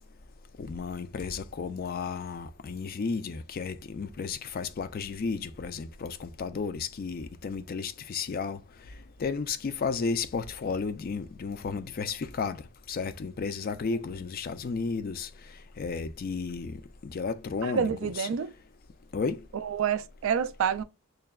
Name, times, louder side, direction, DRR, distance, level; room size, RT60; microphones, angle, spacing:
voice 1, 0.6-8.6 9.2-12.6 12.9-15.3 15.8-16.8 17.0-18.3 19.1-19.4, left 5 dB, 45° left, 0.3 m, -33 dB
voice 2, 17.6-18.5 19.5-20.8, right 7 dB, 65° right, 0.3 m, -28 dB
6.4 x 2.2 x 2.3 m
head